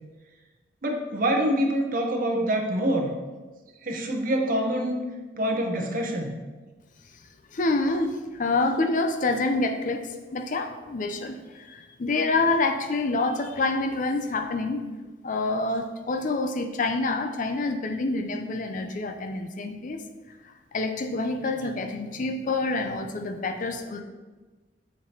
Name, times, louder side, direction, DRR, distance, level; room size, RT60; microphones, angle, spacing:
voice 1, 0.8-3.1 3.8-5.0 5.4-6.4, right 1 dB, 50° right, 2 dB, 0.8 m, -25 dB
voice 2, 7.5-14.8 15.2-20.0 20.7-24.0, left 3 dB, 45° left, 6 dB, 0.5 m, -27 dB
7.3 x 4.8 x 2.8 m, 1.2 s
head